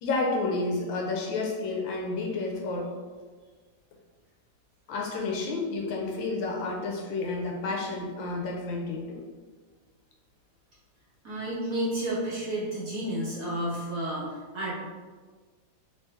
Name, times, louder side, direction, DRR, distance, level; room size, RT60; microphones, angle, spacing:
voice 1, 0.0-2.9 4.9-9.2, left 3 dB, 75° left, 0 dB, 1.3 m, -30 dB
voice 2, 11.2-14.7, right 1 dB, 55° right, -8 dB, 1.1 m, -31 dB
3.2 x 3.2 x 3.2 m, 1.4 s
omnidirectional pair, 2.2 m